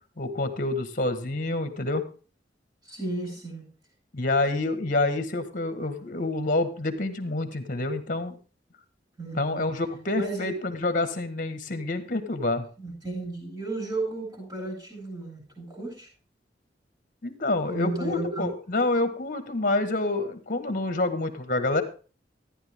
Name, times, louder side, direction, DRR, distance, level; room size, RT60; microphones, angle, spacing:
voice 1, 0.2-2.0 4.1-8.4 9.4-12.7 17.2-21.8, left 2 dB, 50° left, 9 dB, 1.6 m, -27 dB
voice 2, 2.9-3.6 9.2-9.6 10.1-10.5 12.8-16.1 17.6-18.5, right 2 dB, 25° right, -1 dB, 7.9 m, -34 dB
13.5 x 10.0 x 3.6 m, 0.36 s
head